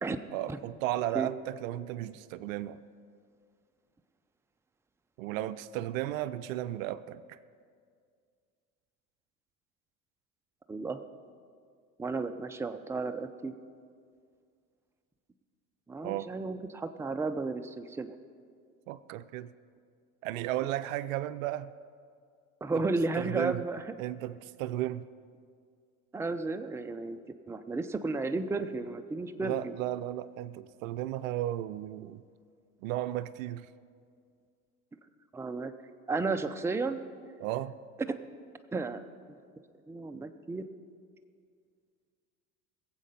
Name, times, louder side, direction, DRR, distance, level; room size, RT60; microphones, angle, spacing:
voice 1, 0.3-2.8 5.2-7.4 16.0-16.3 18.9-19.5 20.2-21.7 22.7-22.8 23.2-23.6 24.0-25.1 29.4-32.2 32.8-33.7 37.4-37.8, right 14 dB, 65° right, 14 dB, 0.6 m, -34 dB
voice 2, 10.7-11.0 12.0-13.5 15.9-18.1 22.6-23.9 26.1-27.2 27.5-29.7 35.3-35.7 36.1-37.0 38.1-38.2 38.7-39.0 39.3-39.4 39.9-40.7, right 3 dB, 5° right, 8 dB, 0.6 m, -33 dB
20.5 x 7.7 x 5.3 m, 2.1 s
hypercardioid pair, 70°, 44 cm